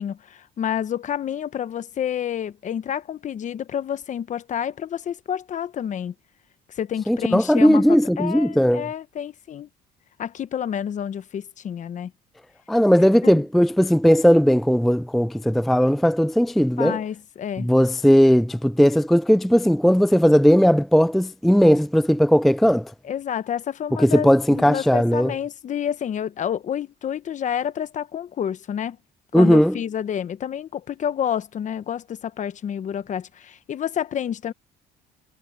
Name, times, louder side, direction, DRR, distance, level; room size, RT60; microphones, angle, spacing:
voice 1, 0.0-6.1 6.7-9.7 10.2-12.1 13.2-13.4 16.8-17.7 23.0-29.0 29.3-34.5, left 9 dB, 45° left, 1.1 m, -29 dB
voice 2, 7.1-8.9 12.7-17.0 17.6-22.9 24.0-25.3 29.3-29.7, equal, ahead, 0.3 m, -17 dB
cardioid pair, 110°, 17 cm